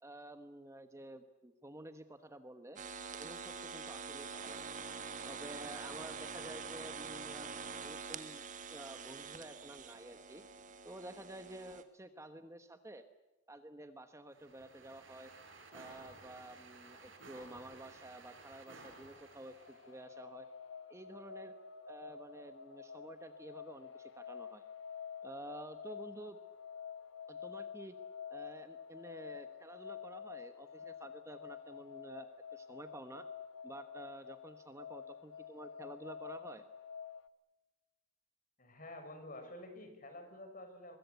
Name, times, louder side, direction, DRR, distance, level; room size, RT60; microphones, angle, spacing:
voice 1, 0.0-2.8 3.2-4.7 5.2-7.5 7.8-8.4 8.7-10.4 10.8-13.0 13.5-15.3 15.7-20.5 20.9-21.5 21.9-24.6 25.2-26.4 27.3-28.0 28.3-33.3 33.6-36.6, right 1 dB, 15° right, 9 dB, 1.1 m, -51 dB
sound 1, 2.8-11.8, right 5 dB, 40° right, 1.8 m, -45 dB
sound 2, 14.3-20.0, right 3 dB, 75° right, 5.3 m, -56 dB
sound 3, 19.1-37.3, left 7 dB, 65° left, 1.1 m, -49 dB
voice 2, 38.6-41.0, left 1 dB, 45° left, 6 dB, 5.7 m, -49 dB
24.0 x 22.0 x 8.2 m, 1.1 s
head